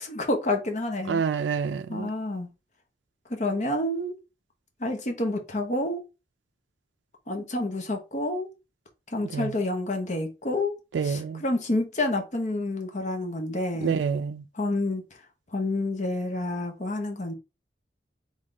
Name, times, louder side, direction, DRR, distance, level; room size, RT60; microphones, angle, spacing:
voice 1, 0.0-1.2 1.9-2.5 3.4-4.1 4.8-6.0 7.3-8.5 9.1-10.7 11.0-14.0 14.5-15.0 15.5-17.3, left 2 dB, 40° left, 1.0 m, -28 dB
voice 2, 1.1-2.1 9.3-9.5 10.9-11.4 13.8-14.4, right 6 dB, 80° right, 0.3 m, -27 dB
3.9 x 3.6 x 3.7 m
head